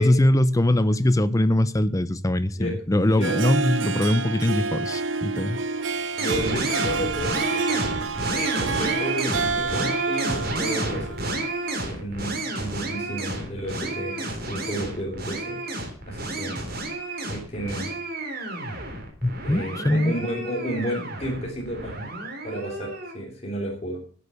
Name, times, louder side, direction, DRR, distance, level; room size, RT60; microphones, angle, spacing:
voice 1, 0.0-5.6 19.2-20.1, left 1 dB, 15° left, 0.6 m, -22 dB
Harp, 3.0-11.8, right 4 dB, 75° right, 0.8 m, -29 dB
voice 2, 3.1-3.5 6.2-7.9 8.3-11.4 11.8-15.6 16.1-16.6 17.2-17.9 19.4-22.1 22.4-24.0, equal, 35° left, 3.3 m, -32 dB
sound 1, 6.2-23.1, right 2 dB, 50° right, 3.6 m, -30 dB
11.0 x 8.4 x 6.9 m
head